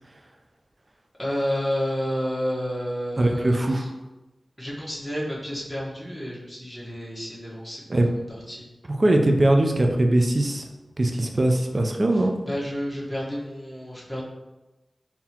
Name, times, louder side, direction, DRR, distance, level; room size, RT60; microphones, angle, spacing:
voice 1, 1.2-3.9 4.6-7.8 8.5-8.7 12.1-14.3, equal, 5° left, -6 dB, 1.2 m, -30 dB
voice 2, 3.2-3.8 7.9-8.1 8.9-10.6 11.0-12.3, right 1 dB, 40° right, 3 dB, 0.4 m, -21 dB
3.8 x 2.8 x 2.9 m, 1.1 s
wide cardioid pair, 55°, 0 cm